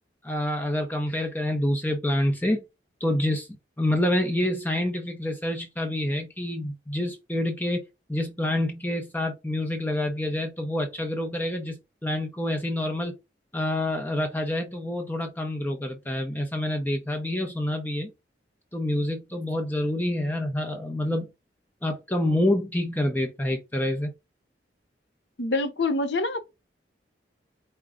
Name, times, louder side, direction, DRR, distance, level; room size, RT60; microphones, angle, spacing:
voice 1, 0.2-2.6 3.0-3.5 3.8-13.2 13.5-18.1 18.7-21.3 21.8-24.1, left 1 dB, 10° left, 0.6 m, -27 dB
voice 2, 25.4-26.4, left 2 dB, 75° left, 0.8 m, -25 dB
4.8 x 2.2 x 3.6 m
head